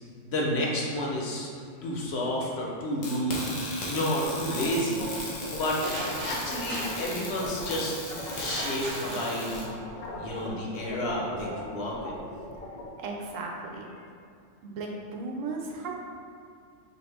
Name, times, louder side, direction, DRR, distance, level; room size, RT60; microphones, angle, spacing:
voice 1, 0.2-1.5 1.8-3.5 3.9-5.1 5.5-5.8 6.2-9.6 10.1-12.2, equal, 60° left, -3 dB, 0.9 m, -30 dB
sound 1, 3.0-9.6, left 2 dB, 80° left, 1.2 m, -37 dB
sound 2, 4.2-9.2 9.5-12.9, left 2 dB, 45° left, 0.6 m, -38 dB
sound 3, 5.8-7.8 8.3-9.9, right 2 dB, 55° right, 0.7 m, -38 dB
voice 2, 13.0-13.9 14.6-15.9, right 3 dB, 90° right, 0 dB, 1.0 m, -36 dB
4.6 x 2.8 x 3.3 m, 2.3 s
omnidirectional pair, 1.3 m